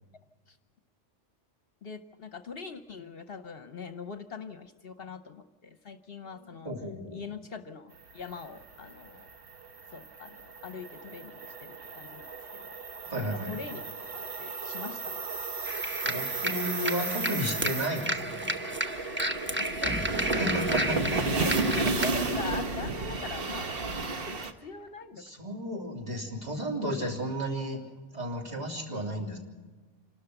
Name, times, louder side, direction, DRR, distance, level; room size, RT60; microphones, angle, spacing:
voice 1, 1.8-6.7 7.1-9.3 9.9-12.8 13.2-13.9 14.4-15.2 19.6-20.4 21.0-23.7 24.1-25.2 28.9-29.0, left 5 dB, 55° left, 10 dB, 1.0 m, -42 dB
voice 2, 6.6-7.2 13.1-13.5 15.6-18.5 20.3-21.3 25.2-27.8 28.1-29.4, equal, 35° right, 1 dB, 3.5 m, -33 dB
sound 1, 8.0-24.5, right 3 dB, 50° right, 1.4 m, -34 dB
sound 2, 15.7-22.1, right 1 dB, 10° right, 1.0 m, -32 dB
27.0 x 13.0 x 7.9 m, 1.3 s
omnidirectional pair, 1.2 m